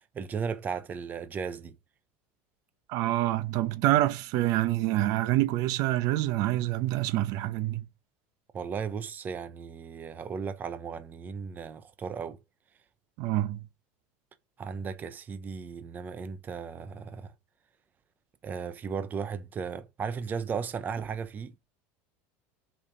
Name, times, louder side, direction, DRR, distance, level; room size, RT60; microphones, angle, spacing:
voice 1, 0.1-1.7 8.5-12.4 14.6-17.3 18.4-21.6, right 6 dB, 25° right, 0.8 m, -35 dB
voice 2, 2.9-7.9 13.2-13.6, right 15 dB, 60° right, 0.9 m, -26 dB
7.2 x 5.0 x 5.1 m
supercardioid pair, 135°, 7 cm